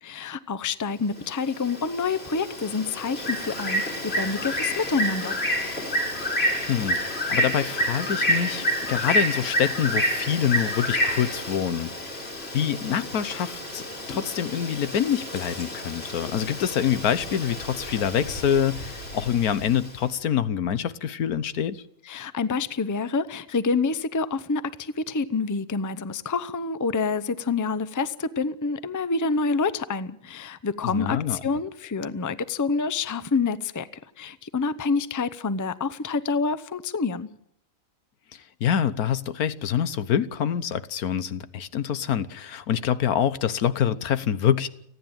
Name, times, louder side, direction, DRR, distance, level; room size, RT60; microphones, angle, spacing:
voice 1, 0.0-5.4 22.1-33.9 34.2-37.3, left 4 dB, 20° left, 0.5 m, -27 dB
Bird, 1.2-19.9, equal, 45° left, 4.2 m, -29 dB
voice 2, 6.7-13.8 14.1-21.8 30.8-31.4 38.3-44.7, left 9 dB, 90° left, 1.5 m, -26 dB
29.5 x 10.0 x 8.9 m
omnidirectional pair, 1.5 m